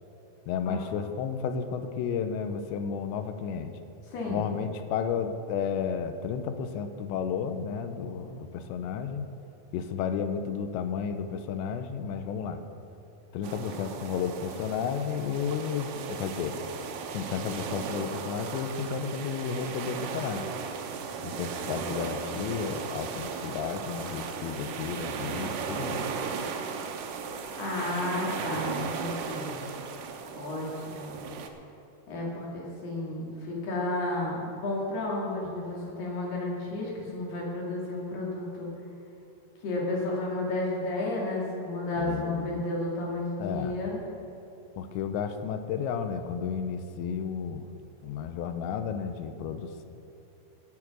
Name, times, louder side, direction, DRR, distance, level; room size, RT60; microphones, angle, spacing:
voice 1, 0.5-3.7 4.3-9.3 9.7-12.6 13.3-16.6 17.1-20.5 21.2-26.1 42.0-42.7 43.4-43.8 44.8-47.7 48.0-49.9, left 7 dB, 90° left, 8 dB, 3.1 m, -32 dB
voice 2, 4.1-4.4 27.6-29.6 30.3-31.2 32.1-38.7 39.6-44.0, left 2 dB, 65° left, -4 dB, 4.4 m, -32 dB
sound 1, 13.4-31.5, right 5 dB, 75° right, 2.1 m, -36 dB
18.0 x 7.1 x 6.1 m, 2.8 s
omnidirectional pair, 5.0 m